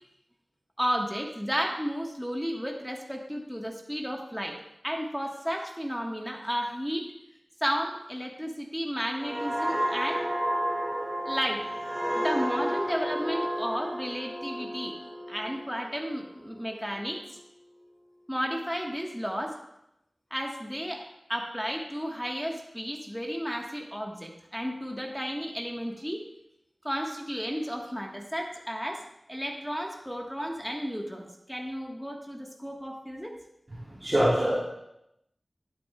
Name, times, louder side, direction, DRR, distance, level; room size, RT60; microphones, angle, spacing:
voice 1, 0.8-4.6 4.8-7.1 7.6-10.2 11.2-11.7 12.1-15.0 15.3-17.4 18.3-19.6 20.3-26.2 26.8-33.3, equal, ahead, 0 dB, 1.2 m, -33 dB
sound 1, 9.2-16.6 17.0-17.3, equal, 20° right, 1.7 m, -31 dB
voice 2, 33.7-34.6, right 1 dB, 40° right, -8 dB, 2.6 m, -25 dB
12.0 x 8.2 x 2.2 m, 0.82 s
wide cardioid pair, 45°, 0 cm